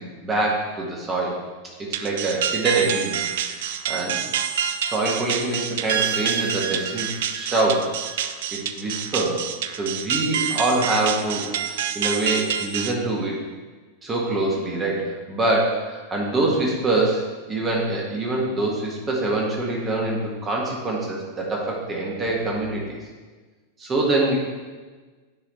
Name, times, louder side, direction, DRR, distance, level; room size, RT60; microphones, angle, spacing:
voice 1, 0.0-1.4 1.8-3.2 3.5-4.2 4.9-8.0 8.5-9.5 9.8-13.4 14.0-23.0 23.8-24.4, right 2 dB, 20° right, -2 dB, 1.5 m, -25 dB
sound 1, 1.9-12.9, right 8 dB, 55° right, 0.3 m, -27 dB
9.2 x 3.3 x 4.1 m, 1.4 s
figure-of-eight pair, 90°, 0 cm